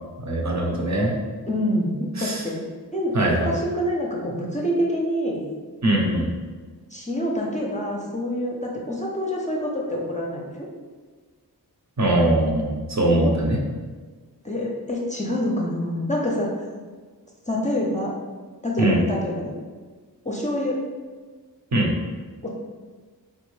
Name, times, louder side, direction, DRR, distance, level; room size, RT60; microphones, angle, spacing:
voice 1, 0.2-1.1 2.2-2.4 3.1-3.5 5.8-6.3 12.0-13.6 18.8-19.0 21.7-21.9, right 1 dB, 45° right, -1 dB, 0.7 m, -21 dB
voice 2, 1.4-1.9 2.2-2.6 2.9-5.4 6.9-10.5 13.1-13.4 14.4-16.6 17.5-18.1 18.6-19.5 20.2-20.8 22.4-22.5, equal, 20° left, -3 dB, 0.5 m, -26 dB
3.6 x 2.1 x 3.1 m, 1.4 s
wide cardioid pair, 55°, 38 cm